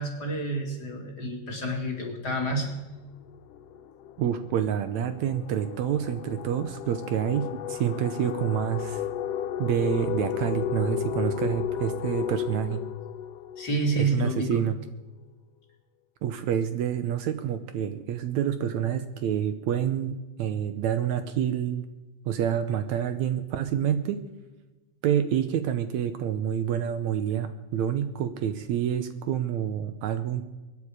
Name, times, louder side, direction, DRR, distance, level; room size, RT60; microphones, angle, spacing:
voice 1, 0.0-2.7 13.6-14.6, right 2 dB, 35° left, 1 dB, 2.8 m, -29 dB
sound 1, 2.7-2.8 3.0-14.5, left 10 dB, 90° left, 2.4 m, -34 dB
voice 2, 4.2-9.0 9.6-12.8 14.0-14.8 16.2-21.8 22.3-24.2 25.0-30.4, right 9 dB, 75° right, 10 dB, 2.0 m, -28 dB
24.5 x 9.8 x 4.8 m, 1.1 s
omnidirectional pair, 3.6 m